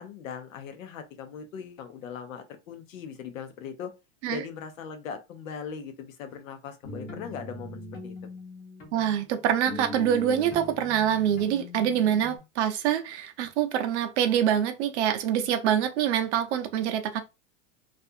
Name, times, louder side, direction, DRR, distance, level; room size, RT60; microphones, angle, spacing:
voice 1, 0.0-3.9 4.3-8.1, left 7 dB, 85° left, 0.8 m, -39 dB
sound 1, 6.8-12.4, left 2 dB, 25° left, 0.8 m, -41 dB
voice 2, 8.9-17.2, right 9 dB, 60° right, 0.6 m, -25 dB
2.5 x 2.4 x 2.6 m
supercardioid pair, 155°, 39 cm